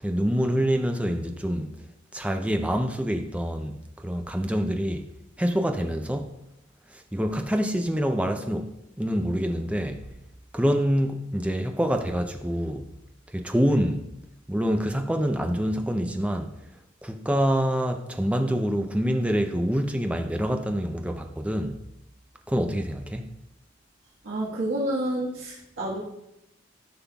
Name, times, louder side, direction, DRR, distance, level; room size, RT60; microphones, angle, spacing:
voice 1, 0.0-1.8 2.1-5.1 5.4-6.4 6.9-8.7 9.0-10.1 10.5-12.9 13.3-14.1 14.5-16.5 17.0-21.8 22.5-23.3, equal, 5° right, 0.5 m, -26 dB
voice 2, 24.2-26.0, right 1 dB, 70° right, 1.5 m, -29 dB
13.5 x 5.5 x 2.3 m
head